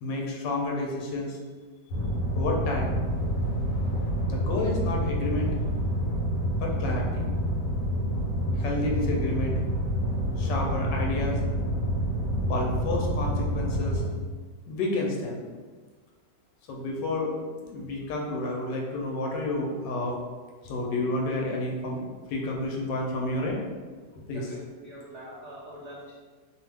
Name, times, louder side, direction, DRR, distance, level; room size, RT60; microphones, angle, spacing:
voice 1, 0.0-1.4 2.3-3.0 4.3-5.5 6.6-7.3 8.6-9.6 10.4-11.4 12.4-14.0 14.7-15.4 16.7-20.2 20.6-22.0 22.3-23.6 24.1-24.5, left 2 dB, 80° left, 0 dB, 1.2 m, -30 dB
sound 1, 1.9-14.0, equal, 60° left, 1.0 m, -28 dB
voice 2, 24.3-26.1, equal, 85° right, -6 dB, 0.6 m, -44 dB
2.9 x 2.3 x 3.3 m, 1.4 s
omnidirectional pair, 1.9 m